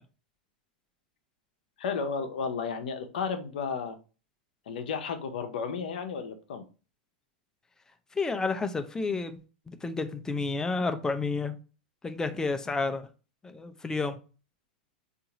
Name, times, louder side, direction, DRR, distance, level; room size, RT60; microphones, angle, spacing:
voice 1, 1.8-4.0 4.7-6.6, left 5 dB, 70° left, 0.6 m, -33 dB
voice 2, 8.2-9.4 9.7-11.6 12.0-13.1 13.4-14.2, left 3 dB, 10° left, 0.4 m, -30 dB
3.7 x 2.5 x 2.9 m
hypercardioid pair, 105°, 5 cm